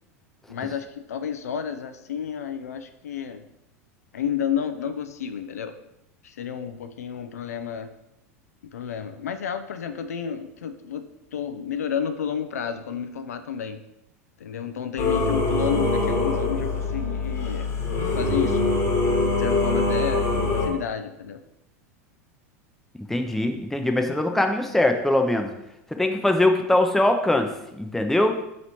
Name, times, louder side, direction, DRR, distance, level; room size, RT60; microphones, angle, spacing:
voice 1, 0.5-3.4 4.1-5.7 6.2-7.9 8.7-11.0 11.3-13.8 14.4-17.7 18.2-18.7 19.2-21.4, left 8 dB, 85° left, 9 dB, 0.4 m, -31 dB
Singing / Musical instrument, 15.0-20.7, left 3 dB, 35° left, 1.2 m, -23 dB
voice 2, 23.1-25.5 26.0-27.5 27.8-28.4, left 1 dB, 5° left, 5 dB, 0.5 m, -22 dB
4.1 x 3.1 x 4.0 m, 0.84 s
hypercardioid pair, 95°, 8 cm